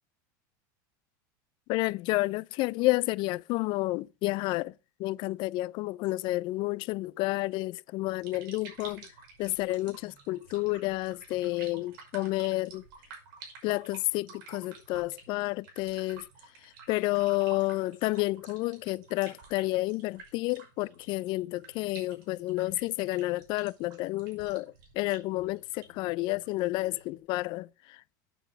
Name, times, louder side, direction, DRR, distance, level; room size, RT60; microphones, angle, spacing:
voice 1, 1.7-4.7 5.0-9.1 9.4-12.8 13.6-16.3 16.6-28.0, left 20 dB, 50° left, 0.4 m, -30 dB
sound 1, 8.0-27.2, right 4 dB, 80° right, 5.5 m, -51 dB
9.1 x 6.9 x 4.5 m
supercardioid pair, 135°, 11 cm